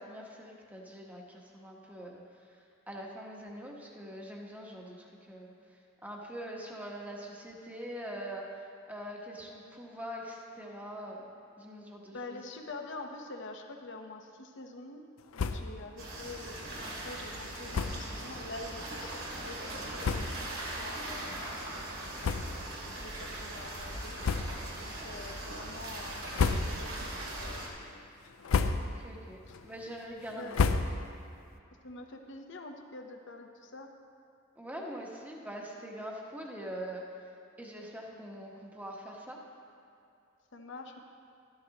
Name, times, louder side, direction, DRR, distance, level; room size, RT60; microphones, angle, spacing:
voice 1, 0.0-2.2 2.9-5.5 6.0-8.5 8.9-11.2 11.6-12.4 29.0-30.6 34.6-37.0 37.6-39.4, equal, 10° right, -1 dB, 1.2 m, -43 dB
voice 2, 12.1-22.3 22.9-24.2 24.7-27.1 27.4-28.1 29.5-29.6 30.3-30.6 31.8-33.9 40.5-41.0, left 2 dB, 60° left, 4 dB, 0.9 m, -46 dB
sound 1, 15.3-15.8 16.2-16.3 16.5-16.7 17.7-18.1 18.9-19.0 19.7-19.8 20.0-20.5 21.1-21.2 22.2-22.8 23.2-23.4 24.2-24.8 25.2-25.7 26.1-27.0 27.4-27.8 28.3-29.1 29.5-31.3, left 4 dB, 85° left, 0.5 m, -32 dB
sound 2, 16.0-27.7, right 1 dB, 80° right, 2.6 m, -40 dB
13.0 x 12.5 x 2.9 m, 2.6 s
head